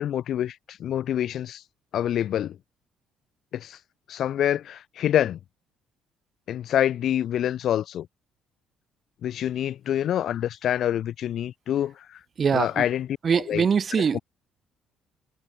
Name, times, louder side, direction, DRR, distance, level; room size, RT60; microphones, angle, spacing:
voice 1, 0.0-1.6 1.9-2.6 3.5-3.8 4.1-5.4 6.5-8.1 9.2-12.2 12.5-13.1 13.5-13.6 14.1-14.2, left 11 dB, 65° left, 1.9 m, -26 dB
voice 2, 12.4-12.8 13.2-14.2, right 6 dB, 45° right, 0.5 m, -23 dB
supercardioid pair, 70°, 0 cm